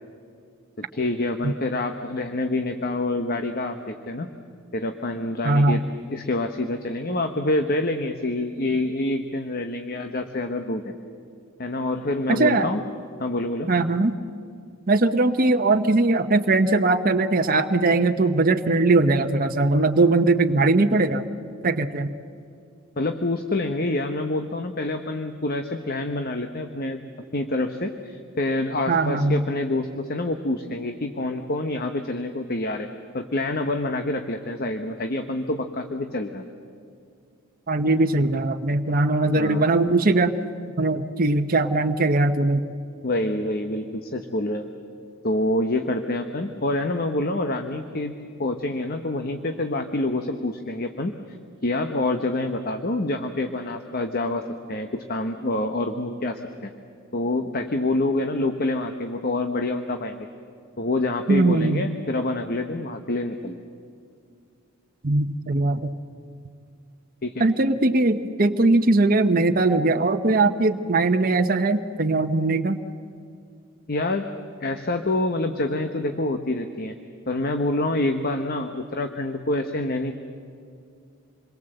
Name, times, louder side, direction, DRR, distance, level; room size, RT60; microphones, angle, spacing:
voice 1, 0.8-4.3 4.7-5.8 6.1-10.9 11.6-12.8 13.2-13.7 23.0-27.0 27.3-32.9 33.1-36.4 39.3-39.7 43.0-44.7 45.2-51.1 51.6-54.4 54.7-56.7 57.1-60.3 60.8-63.6 67.2-67.5 73.9-74.3 74.6-76.9 77.3-80.1, left 2 dB, 45° left, 6 dB, 1.1 m, -27 dB
voice 2, 5.4-5.8 12.3-12.7 13.7-14.1 14.9-21.2 21.6-22.1 28.9-29.4 37.7-40.3 40.8-42.7 61.3-61.8 65.0-65.9 67.4-72.8, right 2 dB, 45° right, 6 dB, 0.9 m, -20 dB
27.5 x 22.0 x 7.9 m, 2.4 s
head